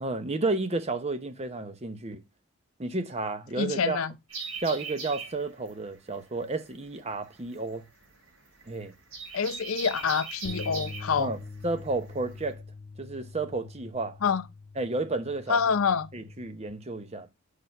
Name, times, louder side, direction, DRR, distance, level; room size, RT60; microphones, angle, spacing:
voice 1, 0.0-2.2 2.8-4.0 4.6-7.8 8.7-8.9 11.2-11.4 11.6-12.6 13.0-14.2 14.8-15.6 16.1-17.3, right 3 dB, 30° right, 0.9 m, -31 dB
voice 2, 3.6-4.1 9.3-11.3 14.2-14.4 15.5-16.1, left 6 dB, 80° left, 0.6 m, -26 dB
sound 1, 4.3-12.5, right 4 dB, 80° right, 2.7 m, -41 dB
sound 2, 10.4-16.7, left 3 dB, 55° left, 1.5 m, -44 dB
4.9 x 4.6 x 5.4 m
head